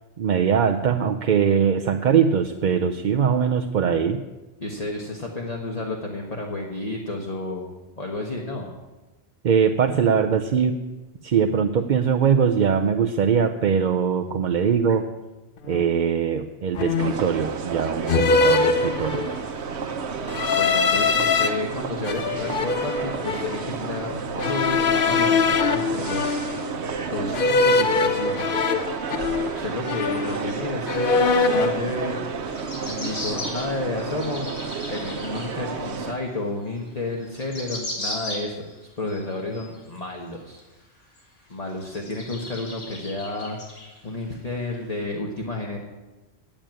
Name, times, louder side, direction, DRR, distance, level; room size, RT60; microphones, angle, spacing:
voice 1, 0.2-4.2 9.4-10.8 11.2-15.1 15.7-19.3, right 7 dB, 50° right, 5 dB, 0.6 m, -21 dB
voice 2, 4.6-7.7 8.0-8.7 20.5-26.4 27.1-28.7 29.5-31.2 31.5-32.2 32.9-34.5 34.9-40.6 41.5-43.6 44.0-45.8, left 2 dB, 35° left, 0 dB, 1.3 m, -31 dB
sound 1, 15.7-15.9 16.7-17.3 18.1-19.5 20.3-21.5 22.0-23.6 24.4-26.8 27.3-29.6 29.9-30.6 30.9-31.8, left 4 dB, 50° left, 0.9 m, -22 dB
sound 2, 17.0-36.1, right 5 dB, 65° right, 1.2 m, -31 dB
sound 3, 32.4-35.5 36.0-36.1 36.9-37.0 37.1-38.7 39.1-40.0 40.6-40.7 41.2-41.3 41.8-44.2 44.7-44.8, left 1 dB, 80° left, 2.8 m, -36 dB
8.8 x 8.7 x 9.0 m, 1.1 s
omnidirectional pair, 1.2 m